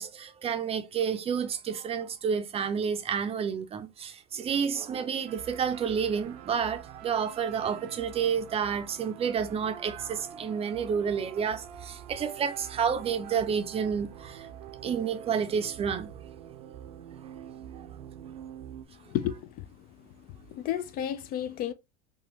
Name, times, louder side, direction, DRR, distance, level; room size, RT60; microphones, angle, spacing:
voice 1, 0.0-14.5 14.8-16.1 17.8-17.9, right 7 dB, 30° right, 0.5 m, -30 dB
sound 1, 5.3-18.9, right 10 dB, 85° right, 0.5 m, -46 dB
voice 2, 19.1-19.7 20.5-21.7, left 11 dB, 50° left, 0.4 m, -32 dB
3.0 x 2.3 x 2.8 m
supercardioid pair, 105°, 20 cm